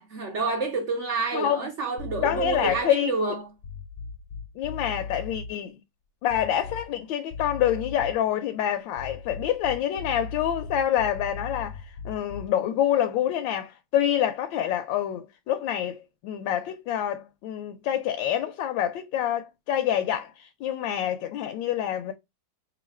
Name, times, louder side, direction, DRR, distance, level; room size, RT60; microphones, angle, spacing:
voice 1, 0.0-3.5, right 3 dB, 70° right, 0.6 m, -28 dB
sound 1, 2.0-2.9 3.6-5.5 6.3-7.0 7.3-8.3 8.9-12.6, left 5 dB, 70° left, 0.9 m, -38 dB
voice 2, 2.2-3.1 4.6-5.8 6.2-22.1, left 10 dB, 85° left, 1.3 m, -27 dB
3.1 x 2.7 x 4.0 m
omnidirectional pair, 2.0 m